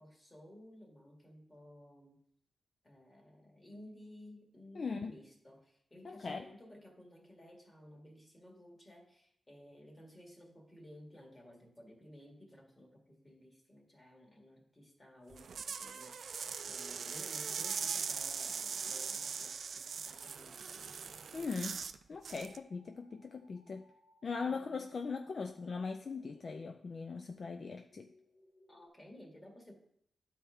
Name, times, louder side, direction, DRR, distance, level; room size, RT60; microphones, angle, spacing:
voice 1, 0.0-2.2 2.8-21.5 24.4-24.8 28.7-29.7, left 1 dB, 25° left, 0 dB, 1.8 m, -56 dB
voice 2, 4.8-5.1 6.0-6.5 21.3-23.9 24.2-28.1, left 4 dB, 55° left, 5 dB, 0.4 m, -40 dB
sound 1, 15.3-22.0 22.2-22.6, right 6 dB, 75° right, 0.3 m, -40 dB
sound 2, 15.6-28.9, left 3 dB, 90° left, 3.0 m, -68 dB
11.5 x 4.4 x 3.5 m, 0.70 s
wide cardioid pair, 100°, 0 cm